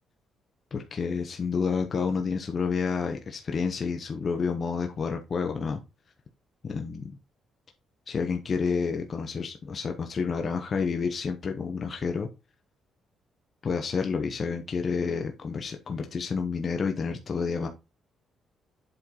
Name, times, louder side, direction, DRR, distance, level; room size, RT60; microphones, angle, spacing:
voice 1, 0.7-5.8 6.6-7.1 8.1-12.3 13.6-17.7, left 5 dB, 35° left, 1.0 m, -29 dB
7.9 x 4.5 x 3.8 m
cardioid pair, 140°, 0 cm